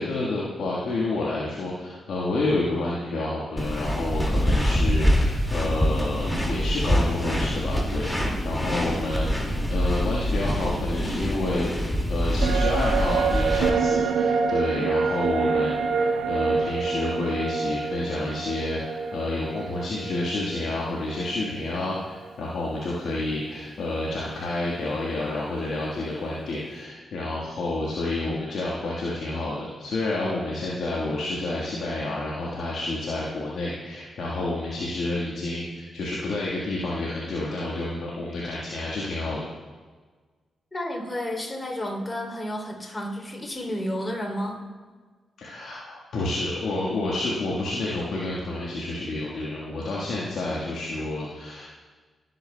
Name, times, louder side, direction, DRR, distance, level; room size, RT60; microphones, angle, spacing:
voice 1, 0.0-39.4 45.4-51.7, left 2 dB, 70° left, -5 dB, 1.4 m, -29 dB
sound 1, 3.6-13.7, equal, 10° left, 2.0 m, -25 dB
sound 2, 12.4-21.9 22.2-22.3, right 5 dB, 80° right, 0.6 m, -27 dB
voice 2, 40.7-44.6, left 1 dB, 25° left, 0 dB, 2.9 m, -31 dB
17.0 x 8.0 x 2.2 m, 1.4 s
hypercardioid pair, 40°, 0 cm